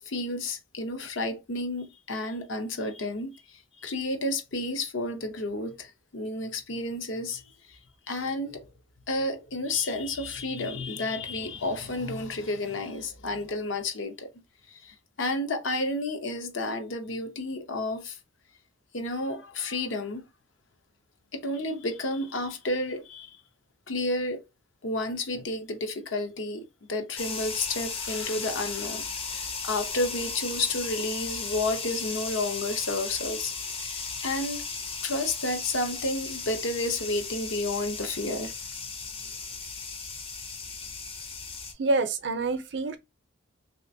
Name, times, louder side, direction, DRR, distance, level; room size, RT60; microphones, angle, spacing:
voice 1, 0.0-7.4 7.7-7.8 8.1-8.7 9.1-14.3 14.7-18.2 18.9-20.2 21.3-23.4 23.9-24.4 24.8-26.6 26.9-34.6 35.0-38.5, left 2 dB, 75° left, 0.8 m, -31 dB
sound 1, 27.2-41.7, left 4 dB, 30° left, 0.5 m, -36 dB
voice 2, 41.8-43.0, right 3 dB, 60° right, 0.5 m, -27 dB
3.2 x 2.8 x 2.6 m
head